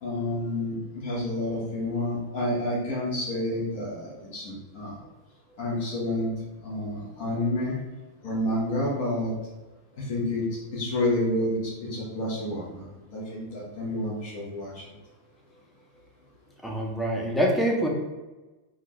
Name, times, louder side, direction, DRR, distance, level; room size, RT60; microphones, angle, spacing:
voice 1, 0.0-5.0 5.6-6.3 6.6-7.8 8.2-9.3 10.0-10.4 10.7-12.8 13.1-14.8, left 1 dB, 50° left, -6 dB, 1.1 m, -29 dB
voice 2, 16.6-17.9, right 1 dB, 5° left, -2 dB, 0.7 m, -25 dB
3.7 x 2.4 x 3.1 m, 1.1 s
figure-of-eight pair, 90°, 0 cm